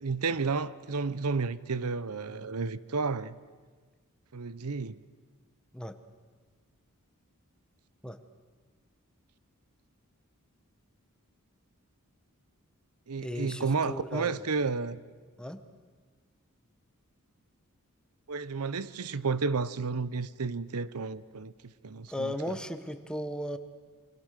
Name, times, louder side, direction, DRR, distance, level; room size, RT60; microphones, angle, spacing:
voice 1, 0.0-3.3 4.3-5.0 13.1-15.0 18.3-22.5, right 4 dB, 85° right, 0.8 m, -32 dB
voice 2, 13.2-14.4 15.4-15.6 22.1-23.6, left 1 dB, 5° left, 1.2 m, -36 dB
28.5 x 24.5 x 6.6 m
head